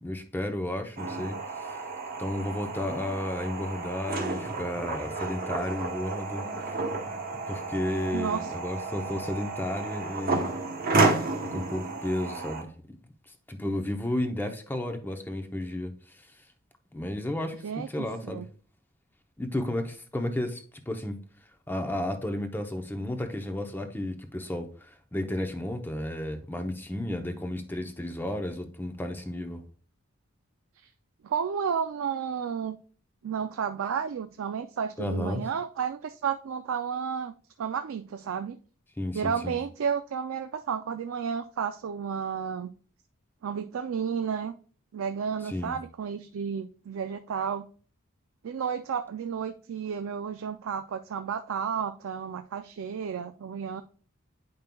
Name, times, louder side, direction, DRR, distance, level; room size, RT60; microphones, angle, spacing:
voice 1, 0.0-1.7 2.2-6.8 7.3-10.5 11.4-12.7 13.5-15.9 16.9-17.6 17.9-18.4 19.4-21.2 21.7-29.6 35.0-35.4 39.0-39.6 45.4-45.8, left 1 dB, 10° left, 6 dB, 0.7 m, -33 dB
sound 1, 1.0-12.6, right 3 dB, 45° right, 1.0 m, -31 dB
voice 2, 8.1-8.5 17.6-18.5 31.2-32.8 33.2-37.3 37.6-38.6 39.1-42.7 43.4-44.6 44.9-47.7 48.4-53.8, right 7 dB, 75° right, 8 dB, 0.4 m, -32 dB
9.0 x 5.3 x 2.2 m, 0.42 s
head